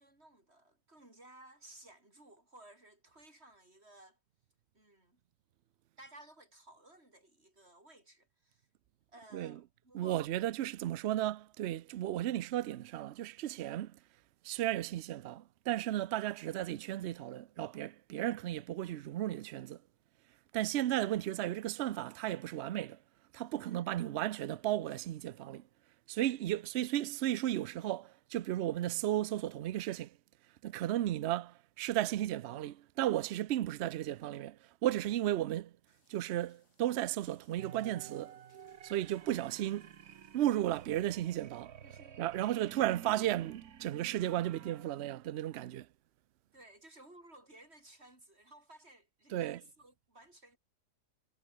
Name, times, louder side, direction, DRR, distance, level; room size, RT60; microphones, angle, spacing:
voice 1, 0.0-4.2 4.7-5.2 6.0-8.7 9.1-10.2 23.6-23.9 26.4-26.6 41.8-42.9 46.5-50.6, right 1 dB, 35° right, 6.9 m, -58 dB
voice 2, 9.9-14.0 14.4-19.8 20.5-23.0 23.3-25.7 26.1-30.2 30.6-35.7 36.1-38.4 38.8-39.9 40.3-41.7 42.2-45.9 49.3-49.6, right 13 dB, 85° right, 0.5 m, -34 dB
sound 1, 35.9-41.4, left 2 dB, 70° left, 6.8 m, -72 dB
sound 2, 37.6-44.8, right 9 dB, 60° right, 1.6 m, -52 dB
omnidirectional pair, 1.8 m